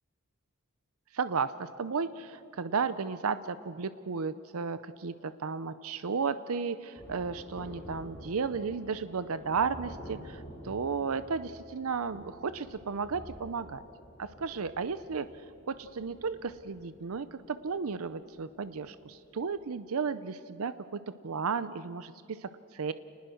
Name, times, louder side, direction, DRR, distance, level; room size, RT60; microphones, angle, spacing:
voice 1, 1.1-13.8 14.2-15.3 15.7-22.9, right 5 dB, 80° right, 13 dB, 0.6 m, -34 dB
Thunder, 7.0-19.0 19.2-19.3, equal, 5° left, 6.3 m, -49 dB
28.5 x 20.0 x 6.4 m, 2.6 s
head